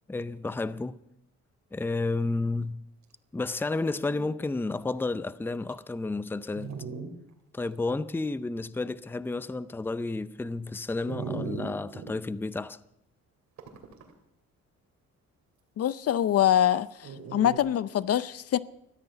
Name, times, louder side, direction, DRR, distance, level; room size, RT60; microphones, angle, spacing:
voice 1, 0.1-1.0 1.7-2.8 3.3-6.8 7.5-12.8, left 3 dB, 5° left, 0.5 m, -31 dB
Dog, 3.6-3.7 4.0-4.3 4.9-5.0 5.7-5.8 6.6-7.1 7.6-7.7 11.1-12.1 13.6-14.1 17.0-17.6, right 5 dB, 65° right, 2.8 m, -37 dB
voice 2, 15.8-18.6, left 11 dB, 55° left, 0.5 m, -24 dB
14.5 x 13.0 x 5.7 m
cardioid pair, 90°, 30 cm